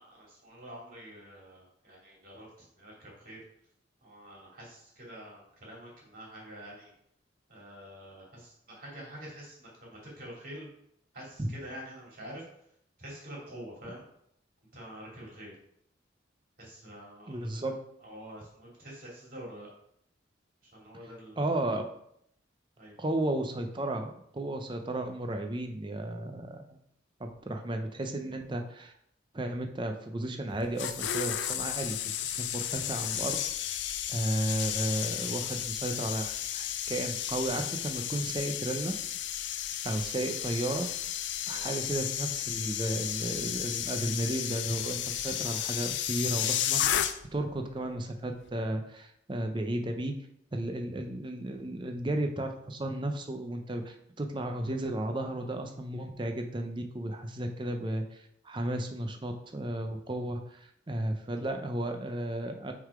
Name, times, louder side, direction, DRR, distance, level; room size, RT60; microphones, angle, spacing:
voice 1, 0.0-3.4 4.0-6.9 7.5-10.7 11.1-12.4 13.0-14.0 14.7-15.5 16.6-17.7 18.0-19.7 20.7-21.4 22.8-23.0 41.4-41.7, equal, 45° right, -4 dB, 2.5 m, -47 dB
voice 2, 17.3-17.7 21.4-21.8 23.0-26.8 27.2-28.9 29.3-33.4 33.6-33.8 34.1-38.9 39.8-40.9 41.5-46.8 47.3-50.1 50.5-62.7, right 1 dB, 25° right, 5 dB, 0.6 m, -34 dB
sound 1, 30.5-47.5 47.7-48.0, left 10 dB, 65° left, 0.4 m, -33 dB
6.1 x 3.8 x 4.8 m, 0.71 s
head